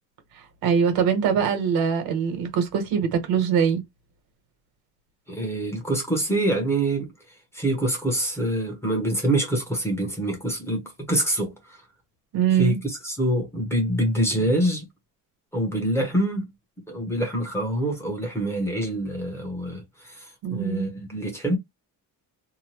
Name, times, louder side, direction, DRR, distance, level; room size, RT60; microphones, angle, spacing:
voice 1, 0.6-3.8 12.3-12.8 20.4-20.9, right 7 dB, 85° right, 1.2 m, -22 dB
voice 2, 5.3-7.1 7.5-11.8 12.6-14.8 15.5-16.5 16.9-21.6, right 1 dB, 5° left, 0.8 m, -25 dB
2.8 x 2.2 x 3.0 m
cardioid pair, 175°, 35 cm